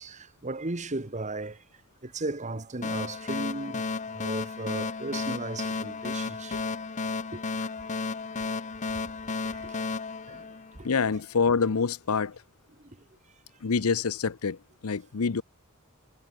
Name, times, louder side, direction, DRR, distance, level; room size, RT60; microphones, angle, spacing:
voice 1, 0.0-1.6 2.0-3.8 4.1-6.6 7.3-7.4 9.5-9.8 10.3-10.5 10.7-10.9 12.8-13.0, right 2 dB, 35° right, 1.5 m, -36 dB
sound 1, 2.8-11.1, left 4 dB, 35° left, 0.7 m, -33 dB
voice 2, 10.8-12.4 13.6-15.4, left 5 dB, 75° left, 0.7 m, -26 dB
head